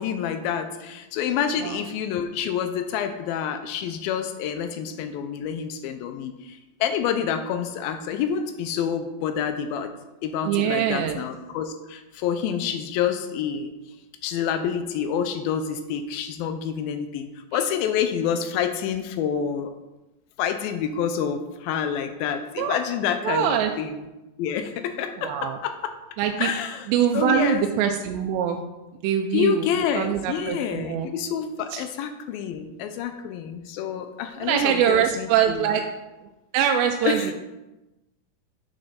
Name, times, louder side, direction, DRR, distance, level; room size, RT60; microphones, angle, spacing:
voice 1, 0.0-9.9 10.2-13.7 14.2-19.7 20.4-23.9 24.4-25.9 26.4-26.9 27.1-27.9 29.3-35.7 37.0-37.3, left 8 dB, 85° left, 8 dB, 2.1 m, -28 dB
voice 2, 10.5-11.2 17.5-17.6 22.6-22.8 23.2-23.7 25.2-25.6 26.2-26.5 26.9-28.6 29.0-29.7 30.0-31.1 31.7-31.8 34.4-35.8 36.5-37.3, right 9 dB, 90° right, 4 dB, 2.7 m, -23 dB
9.1 x 6.6 x 4.2 m, 1.0 s
omnidirectional pair, 4.8 m